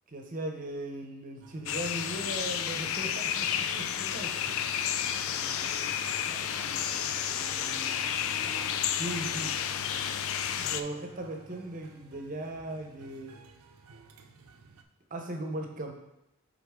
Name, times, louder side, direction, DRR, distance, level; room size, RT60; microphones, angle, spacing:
voice 1, 0.1-4.6 9.0-9.5 10.6-13.3 14.3-14.4 15.1-15.9, right 1 dB, 35° right, 3 dB, 0.8 m, -38 dB
sound 1, 1.4-14.8, right 3 dB, 80° right, 0.6 m, -55 dB
sound 2, 1.7-10.8, left 9 dB, 65° left, 0.3 m, -31 dB
Wind instrument woodwind instrument, 5.1-12.4, right 2 dB, 10° right, 0.5 m, -54 dB
voice 2, 5.2-8.8, equal, 15° left, -8 dB, 1.7 m, -50 dB
7.6 x 3.8 x 3.6 m, 0.84 s
head